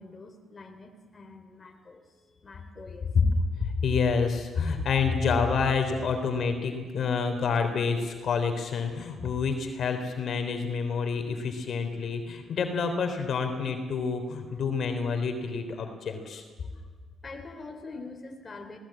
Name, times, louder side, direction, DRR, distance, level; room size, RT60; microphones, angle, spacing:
voice 1, 0.0-3.1 14.5-14.6 16.6-16.8 17.2-18.8, left 3 dB, 30° left, 4 dB, 3.2 m, -45 dB
voice 2, 3.6-16.4, left 5 dB, 60° left, 6 dB, 3.3 m, -28 dB
21.0 x 18.0 x 8.8 m, 1.5 s
cardioid pair, 90°, 0 cm